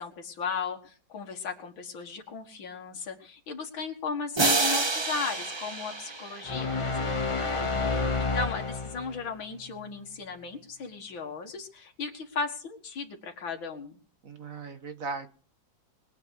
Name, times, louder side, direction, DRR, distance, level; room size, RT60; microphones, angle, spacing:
voice 1, 0.0-14.0, left 5 dB, 85° left, 3 dB, 2.5 m, -36 dB
sound 1, 4.4-7.2, right 3 dB, 30° right, 0.4 m, -29 dB
sound 2, 6.5-9.2, left 3 dB, 25° left, 0.7 m, -29 dB
voice 2, 7.5-8.1 14.2-15.3, right 4 dB, 45° right, 8 dB, 1.7 m, -39 dB
22.0 x 8.7 x 6.6 m, 0.41 s
omnidirectional pair, 2.1 m